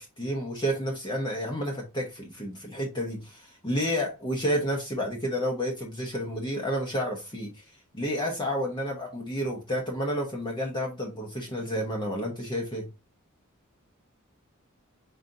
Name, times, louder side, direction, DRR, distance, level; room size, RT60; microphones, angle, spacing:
voice 1, 0.0-7.6 7.9-12.9, equal, 20° left, 0.9 m, -30 dB
5.0 x 3.8 x 2.7 m
head